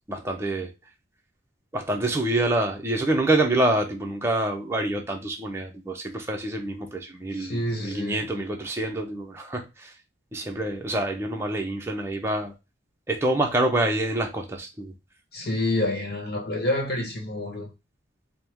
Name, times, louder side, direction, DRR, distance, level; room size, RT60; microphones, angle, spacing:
voice 1, 0.1-0.7 1.7-9.9 10.3-12.5 13.1-14.9, right 1 dB, 15° right, 0.6 m, -26 dB
voice 2, 7.3-8.3 15.3-17.7, left 1 dB, 50° left, 1.2 m, -28 dB
4.5 x 2.1 x 3.4 m
head